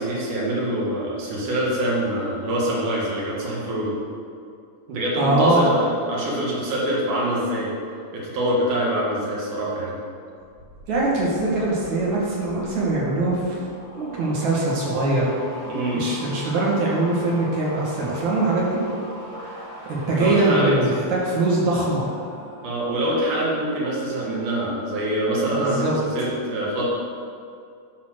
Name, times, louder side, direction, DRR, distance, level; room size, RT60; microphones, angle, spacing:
voice 1, 0.0-4.0 4.9-7.7 8.1-10.0 15.7-16.0 20.1-20.7 22.6-26.8, right 1 dB, 90° right, -5 dB, 3.3 m, -25 dB
voice 2, 5.2-5.7 10.9-13.6 14.0-15.3 15.9-18.8 19.3-19.5 19.9-22.1 25.6-25.9, right 2 dB, 70° right, -5 dB, 3.3 m, -22 dB
sound 1, 10.4-23.0 23.3-23.8, equal, 20° right, 1.0 m, -40 dB
11.0 x 4.3 x 6.4 m, 2.5 s
omnidirectional pair, 3.5 m